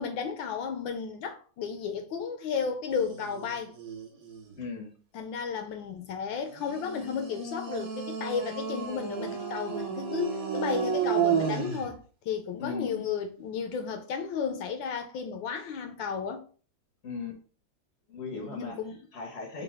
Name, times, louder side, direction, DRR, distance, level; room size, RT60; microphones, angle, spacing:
voice 1, 0.0-3.7 5.1-16.4 18.3-19.0 19.5-19.6, left 6 dB, 75° left, 1.2 m, -33 dB
sound 1, 2.9-4.6 6.5-11.9, right 7 dB, 55° right, 1.1 m, -32 dB
voice 2, 4.6-4.9 12.6-13.1 17.0-17.4 18.1-18.8 19.1-19.6, left 4 dB, 60° left, 0.7 m, -37 dB
5.5 x 2.3 x 3.5 m
omnidirectional pair, 2.4 m